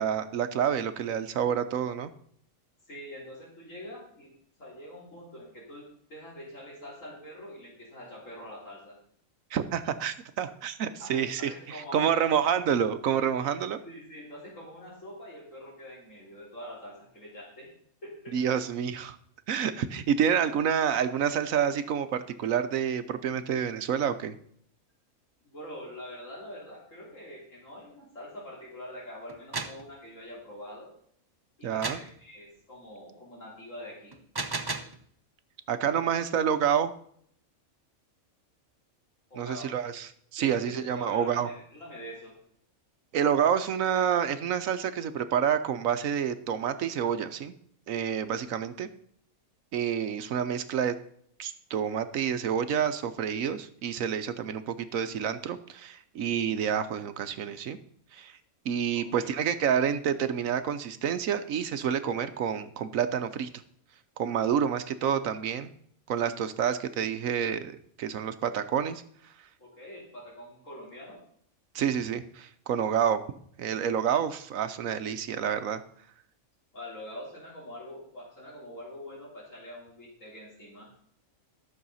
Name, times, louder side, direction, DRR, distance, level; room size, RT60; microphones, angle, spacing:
voice 1, 0.0-2.1 9.5-13.8 18.3-19.2 19.5-24.3 31.6-32.0 35.7-36.9 39.4-41.5 43.1-47.5 47.9-48.9 49.7-50.9 51.4-57.8 58.1-58.3 58.6-63.5 64.2-65.7 66.1-69.0 71.7-73.2 73.6-75.8, right 8 dB, 70° right, 11 dB, 1.1 m, -28 dB
voice 2, 2.9-4.3 4.6-9.0 11.0-12.3 13.4-17.7 18.0-18.4 25.4-30.9 31.6-34.2 39.3-39.7 40.4-42.3 58.9-59.3 69.6-71.2 76.7-80.9, left 1 dB, 60° left, -4 dB, 3.8 m, -44 dB
sound 1, 29.3-29.8 31.8-32.1 34.1-35.0, right 3 dB, 25° right, 0.5 m, -33 dB
13.0 x 6.6 x 5.5 m, 0.65 s
omnidirectional pair, 1.5 m